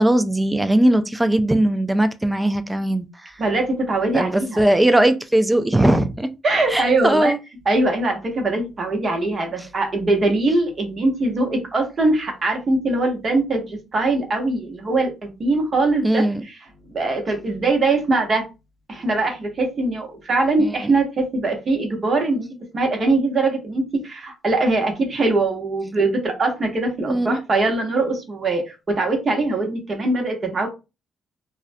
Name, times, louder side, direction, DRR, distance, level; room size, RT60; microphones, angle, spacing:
voice 1, 0.0-3.3 4.1-6.3 6.7-7.4 16.0-16.4 20.6-20.9 27.0-27.4, right 1 dB, 10° right, 0.3 m, -19 dB
voice 2, 3.4-4.6 6.4-7.3 7.7-16.5 16.9-18.5 18.9-22.5 22.7-30.7, right 2 dB, 40° right, 0.9 m, -22 dB
2.3 x 2.1 x 2.5 m
cardioid pair, 90°, 0 cm